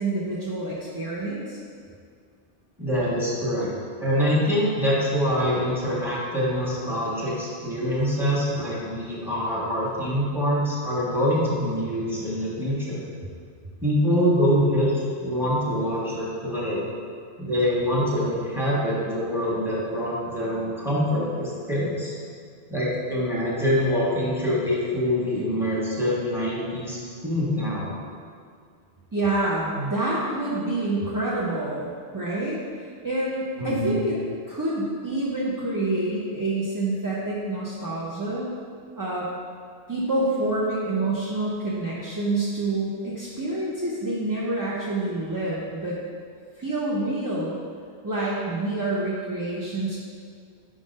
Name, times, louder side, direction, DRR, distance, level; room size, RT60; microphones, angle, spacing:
voice 1, 0.0-1.6 29.1-34.2 34.5-38.5 39.0-39.3 39.9-46.0 46.6-47.6 48.0-50.0, right 2 dB, 25° right, -7 dB, 0.5 m, -27 dB
voice 2, 2.8-3.7 4.0-13.0 13.8-14.9 15.2-16.9 17.4-22.1 22.7-27.0 27.2-27.9 33.6-34.0, equal, ahead, -7 dB, 1.3 m, -25 dB
5.1 x 3.8 x 5.2 m, 2.2 s
omnidirectional pair, 1.1 m